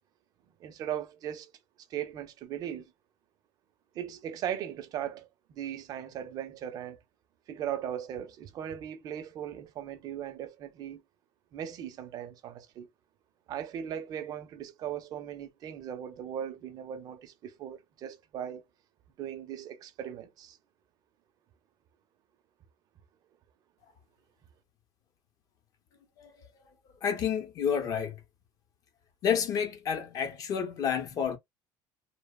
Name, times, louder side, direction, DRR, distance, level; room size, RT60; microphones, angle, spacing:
voice 1, 0.6-1.5 1.9-2.9 3.9-7.0 7.5-11.0 11.5-12.9 13.5-18.6 19.2-20.6, right 10 dB, 45° right, 0.5 m, -38 dB
voice 2, 27.0-28.2 29.2-31.4, left 7 dB, 40° left, 0.6 m, -30 dB
2.7 x 2.0 x 2.3 m
cardioid pair, 160°, 9 cm